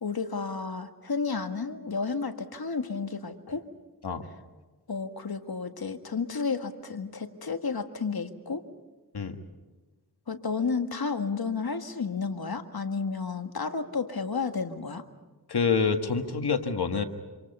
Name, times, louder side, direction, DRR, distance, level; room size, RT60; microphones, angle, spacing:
voice 1, 0.0-3.6 4.9-8.6 10.3-15.0, left 4 dB, 70° left, 7 dB, 1.8 m, -32 dB
voice 2, 15.5-17.0, left 5 dB, 85° left, 6 dB, 1.8 m, -26 dB
27.0 x 26.5 x 5.5 m, 1.3 s
cardioid pair, 45°, 38 cm